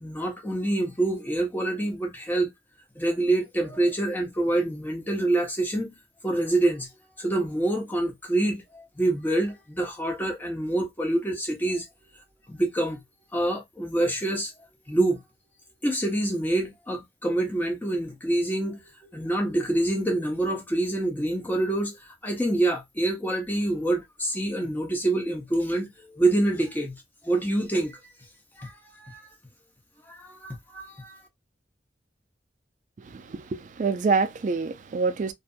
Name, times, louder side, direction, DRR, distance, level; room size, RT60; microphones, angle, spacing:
voice 1, 0.0-2.5 3.0-5.9 6.2-6.9 7.2-11.8 12.5-13.0 13.3-14.5 14.9-15.2 15.8-18.8 19.1-27.0 27.2-28.0 28.6-29.2 30.1-31.2, right 1 dB, 10° left, 0.7 m, -26 dB
voice 2, 33.0-35.3, right 4 dB, 45° right, 0.3 m, -26 dB
2.6 x 2.5 x 2.4 m
head